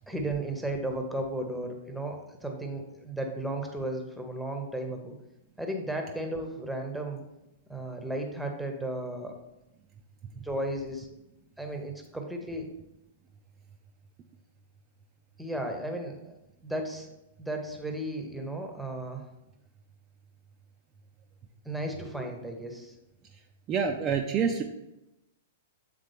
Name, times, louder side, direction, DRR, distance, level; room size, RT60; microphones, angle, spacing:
voice 1, 0.1-5.2 5.6-7.2 7.7-9.4 10.3-11.1 11.6-12.7 15.4-16.3 16.6-17.1 17.4-19.3 21.6-23.0, right 1 dB, ahead, 3 dB, 0.8 m, -34 dB
voice 2, 23.7-24.6, right 6 dB, 25° right, 3 dB, 0.4 m, -27 dB
7.6 x 3.6 x 3.4 m, 0.92 s
figure-of-eight pair, 105°, 0 cm